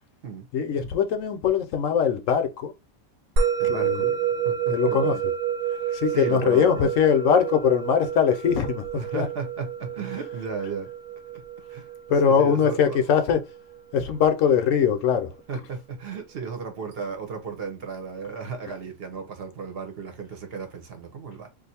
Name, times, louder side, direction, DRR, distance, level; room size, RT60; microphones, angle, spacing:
voice 1, 0.5-2.7 3.7-5.2 5.9-8.8 9.1-9.3 12.1-13.4 13.9-15.3, left 7 dB, 75° left, 1.0 m, -22 dB
Musical instrument, 3.4-14.0, right 7 dB, 75° right, 1.0 m, -29 dB
voice 2, 3.6-4.1 4.4-5.2 5.7-6.9 9.0-10.9 11.3-11.4 11.7-11.9 12.2-13.1 15.5-21.5, right 5 dB, 50° right, 0.9 m, -35 dB
2.6 x 2.5 x 4.1 m
omnidirectional pair, 1.4 m